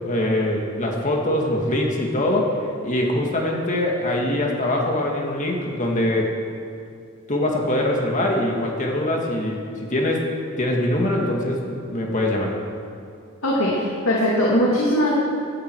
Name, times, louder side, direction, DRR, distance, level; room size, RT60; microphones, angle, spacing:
voice 1, 0.0-6.3 7.3-10.3 10.6-12.5, left 1 dB, 40° left, 0 dB, 2.0 m, -23 dB
voice 2, 13.4-15.2, equal, 85° left, -5 dB, 2.5 m, -20 dB
17.0 x 12.0 x 4.8 m, 2.4 s
head